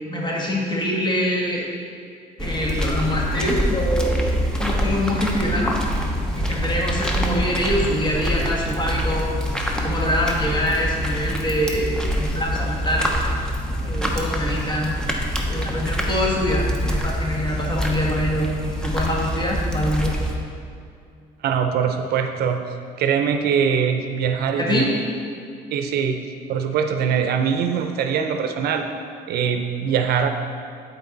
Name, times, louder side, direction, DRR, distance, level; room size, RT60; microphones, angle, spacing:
voice 1, 0.0-1.6 2.4-4.3 4.6-5.8 6.3-9.3 9.8-13.1 13.8-14.9 15.4-20.1 24.5-24.9, equal, 25° left, -4 dB, 1.8 m, -24 dB
sound 1, 2.4-20.3, equal, 5° left, 0.9 m, -25 dB
voice 2, 21.4-22.6 23.0-24.9 25.7-26.2 26.5-28.9 29.3-30.3, right 7 dB, 70° right, 6 dB, 0.6 m, -22 dB
11.0 x 4.6 x 4.0 m, 2.4 s
cardioid pair, 110°, 17 cm